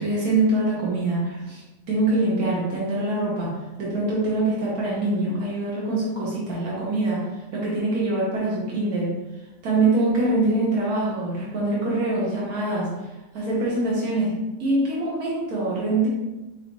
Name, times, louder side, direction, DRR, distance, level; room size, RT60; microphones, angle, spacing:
voice 1, 0.0-3.5 3.8-7.3 7.5-9.1 9.6-12.9 13.3-14.3 14.6-16.1, right 2 dB, 85° right, -6 dB, 1.6 m, -24 dB
5.4 x 3.1 x 3.1 m, 1.1 s
omnidirectional pair, 1.5 m